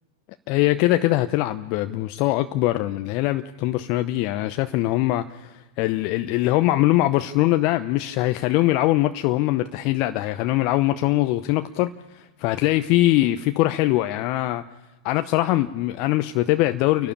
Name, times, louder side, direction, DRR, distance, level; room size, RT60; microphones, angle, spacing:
voice 1, 0.5-14.6 15.0-17.1, left 16 dB, 50° left, 9 dB, 0.7 m, -22 dB
29.5 x 12.0 x 8.7 m, 1.1 s
figure-of-eight pair, 95°, 0 cm